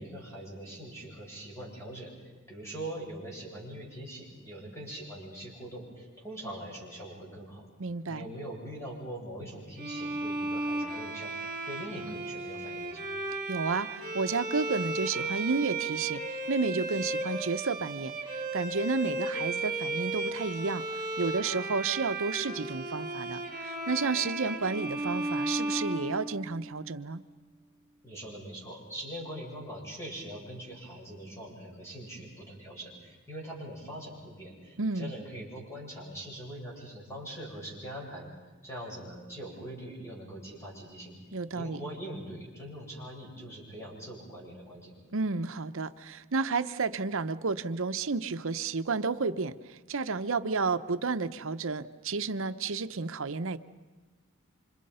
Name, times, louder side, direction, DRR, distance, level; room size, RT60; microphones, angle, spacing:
voice 1, 0.0-7.7 8.1-13.1 28.0-38.3 38.6-44.9, right 1 dB, 15° left, -3 dB, 7.8 m, -42 dB
voice 2, 7.8-8.3 13.5-20.8 21.2-27.2 34.8-35.1 41.3-41.8 45.1-53.6, right 4 dB, 65° right, 11 dB, 0.8 m, -31 dB
Bowed string instrument, 9.8-26.8, right 2 dB, 45° right, 5.0 m, -35 dB
28.5 x 26.0 x 5.6 m, 1.3 s
head